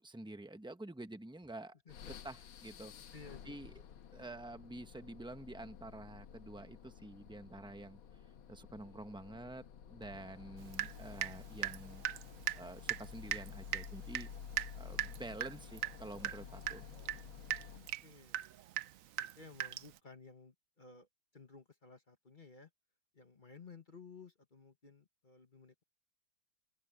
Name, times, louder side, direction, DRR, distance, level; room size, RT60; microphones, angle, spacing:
voice 1, 0.0-1.8 2.2-2.9 3.4-3.7 4.1-8.0 8.5-12.0 12.5-14.3 14.8-16.9, right 2 dB, 5° right, 0.6 m, -48 dB
sound 1, 1.9-18.0, left 8 dB, 85° left, 2.0 m, -52 dB
voice 2, 3.1-3.6 17.7-18.4 19.2-21.1 21.3-22.7 23.1-25.8, left 4 dB, 30° left, 1.2 m, -56 dB
Water tap faucet / Drip, 10.7-11.4 11.6-20.0, right 12 dB, 75° right, 0.7 m, -39 dB
open air
omnidirectional pair, 2.2 m